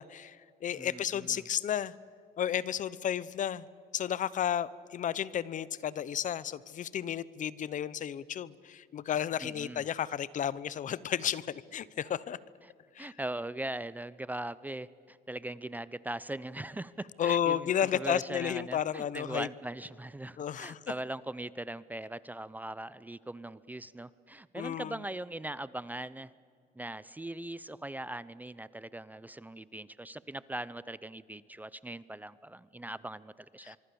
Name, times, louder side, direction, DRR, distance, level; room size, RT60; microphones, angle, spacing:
voice 1, 0.0-2.0 2.4-3.7 3.9-12.4 12.9-13.1 17.2-19.5 20.4-20.8 24.5-25.0 33.6-33.8, left 9 dB, 50° left, 19 dB, 0.8 m, -32 dB
voice 2, 0.7-1.4 9.4-9.9 13.0-26.3 26.8-33.8, right 1 dB, 10° right, 18 dB, 0.6 m, -40 dB
25.0 x 23.5 x 7.0 m, 2.1 s
cardioid pair, 110°, 17 cm